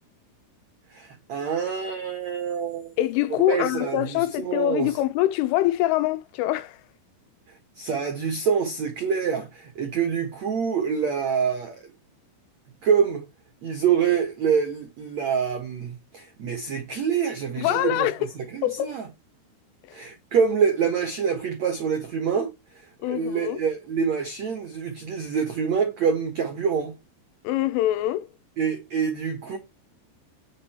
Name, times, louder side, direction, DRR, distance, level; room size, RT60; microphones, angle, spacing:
voice 1, 0.9-2.9 3.5-4.9 7.8-11.9 12.8-13.2 13.6-18.1 18.3-19.0 19.9-26.9 28.6-29.6, right 6 dB, 75° right, 1.6 m, -26 dB
voice 2, 3.0-6.8 17.6-18.3 18.6-19.0 19.9-20.0 23.0-23.6 27.4-28.3, left 14 dB, 90° left, 3.4 m, -24 dB
8.9 x 6.5 x 4.4 m
omnidirectional pair, 5.6 m